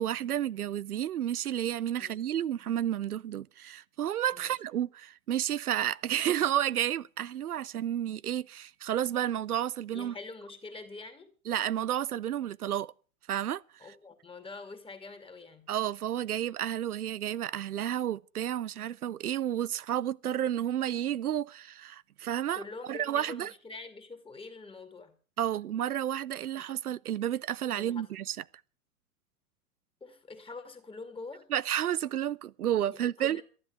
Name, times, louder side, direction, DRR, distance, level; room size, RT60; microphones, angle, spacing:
voice 1, 0.0-10.1 11.5-12.9 13.3-13.6 15.7-22.6 22.9-23.5 25.4-28.4 31.5-33.4, right 11 dB, 90° right, 0.6 m, -31 dB
voice 2, 9.9-11.3 13.8-15.7 22.5-25.2 26.6-26.7 27.8-28.1 30.0-31.5 32.9-33.4, left 3 dB, 10° left, 2.4 m, -45 dB
12.5 x 11.0 x 6.9 m
hypercardioid pair, 100°, 43 cm